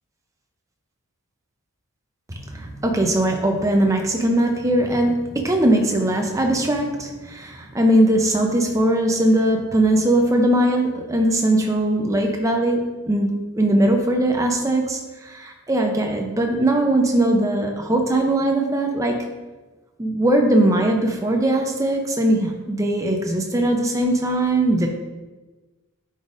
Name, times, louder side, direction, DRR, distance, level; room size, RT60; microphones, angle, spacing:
voice 1, 2.3-19.2 20.0-24.9, right 1 dB, 15° right, 2 dB, 0.5 m, -20 dB
9.6 x 4.0 x 2.5 m, 1.2 s
head